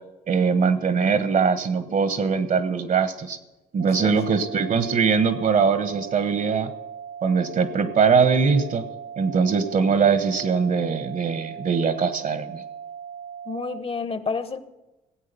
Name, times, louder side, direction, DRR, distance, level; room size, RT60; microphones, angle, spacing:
voice 1, 0.3-3.4 3.7-6.7 7.2-8.9 9.2-12.6, right 5 dB, 50° right, 1.3 m, -21 dB
sound 1, 3.8-13.8, right 8 dB, 85° right, 0.7 m, -38 dB
voice 2, 4.0-4.4 13.5-14.6, left 4 dB, 35° left, 1.0 m, -30 dB
16.0 x 8.5 x 6.9 m
supercardioid pair, 65°, 17 cm